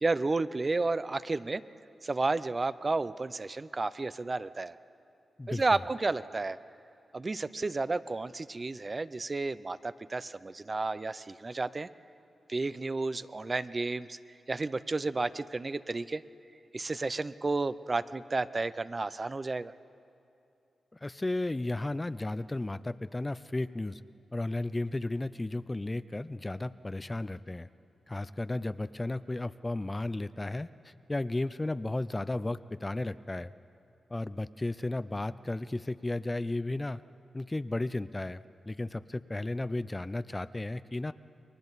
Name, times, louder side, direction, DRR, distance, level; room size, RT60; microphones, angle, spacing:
voice 1, 0.0-1.6 2.0-4.8 5.5-6.6 7.1-11.9 12.5-14.2 14.5-16.2 16.7-19.7, right 3 dB, 35° right, 15 dB, 0.6 m, -32 dB
voice 2, 5.4-5.8 21.0-24.0 24.3-27.7 28.1-33.5 34.1-37.0 37.3-41.1, left 2 dB, 25° left, 14 dB, 0.5 m, -34 dB
30.0 x 22.5 x 4.1 m, 2.7 s
cardioid pair, 65°, 0 cm